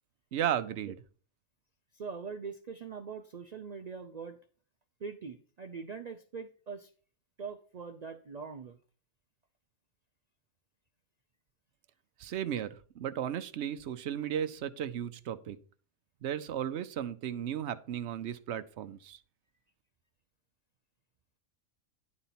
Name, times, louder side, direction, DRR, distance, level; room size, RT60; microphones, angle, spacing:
voice 1, 0.3-1.0 12.2-15.6 16.2-19.2, right 10 dB, 60° right, 12 dB, 0.8 m, -35 dB
voice 2, 1.9-4.4 5.0-6.9 7.4-8.8, right 5 dB, 80° right, 6 dB, 0.3 m, -42 dB
10.5 x 4.1 x 5.7 m, 0.42 s
omnidirectional pair, 1.5 m